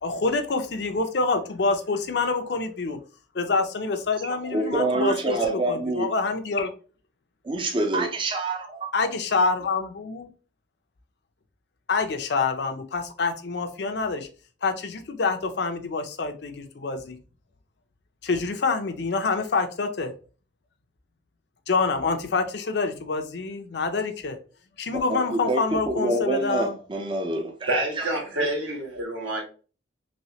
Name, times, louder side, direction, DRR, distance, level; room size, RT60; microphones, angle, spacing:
voice 1, 0.0-3.0 3.3-6.7 8.9-10.3 11.9-14.3 14.6-17.2 18.2-20.1 21.7-24.4 24.8-26.8, left 4 dB, 60° left, 0.5 m, -26 dB
voice 2, 4.3-6.1 7.4-8.9 24.9-27.9, right 2 dB, 25° right, 0.4 m, -26 dB
voice 3, 27.7-29.4, right 1 dB, 80° right, 1.4 m, -28 dB
3.1 x 3.1 x 2.8 m
head